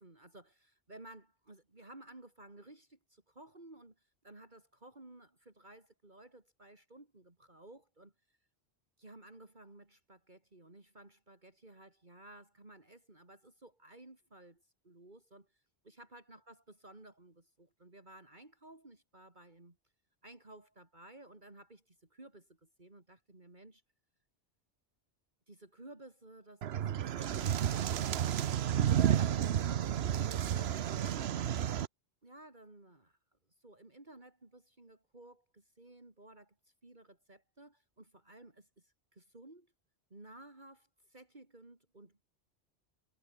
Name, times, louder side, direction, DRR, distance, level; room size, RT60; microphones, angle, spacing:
voice 1, 0.0-8.4 9.0-19.8 20.2-23.8 25.5-28.4 28.9-29.6 30.2-31.8 32.2-33.2 33.6-39.7 40.1-42.2, right 2 dB, 40° right, 3.6 m, -56 dB
sound 1, 26.6-31.9, right 10 dB, 70° right, 1.0 m, -31 dB
omnidirectional pair, 1.2 m